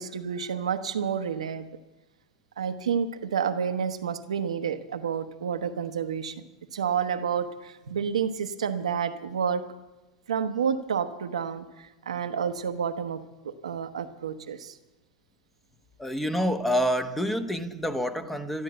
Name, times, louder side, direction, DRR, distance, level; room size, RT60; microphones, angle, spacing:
voice 1, 0.0-1.7 2.6-6.3 6.7-9.7 10.3-14.8, right 7 dB, 75° right, 9 dB, 1.0 m, -30 dB
voice 2, 16.0-18.6, equal, 5° left, 9 dB, 1.2 m, -27 dB
13.0 x 12.0 x 7.9 m, 1.1 s
hypercardioid pair, 95°, 3 cm